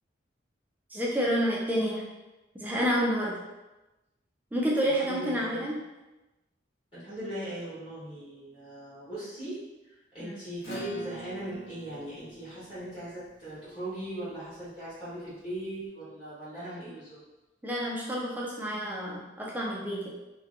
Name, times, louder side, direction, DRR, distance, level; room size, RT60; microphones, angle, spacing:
voice 1, 0.9-2.1 2.6-3.4 4.5-5.8 10.2-10.4 17.6-20.1, equal, 10° right, -4 dB, 0.3 m, -29 dB
voice 2, 5.0-5.6 6.9-9.6 9.8-17.2, right 1 dB, 30° left, -12 dB, 1.1 m, -39 dB
Acoustic guitar / Strum, 10.6-15.5, right 3 dB, 80° left, 1.0 m, -47 dB
2.7 x 2.2 x 2.5 m, 1.0 s
head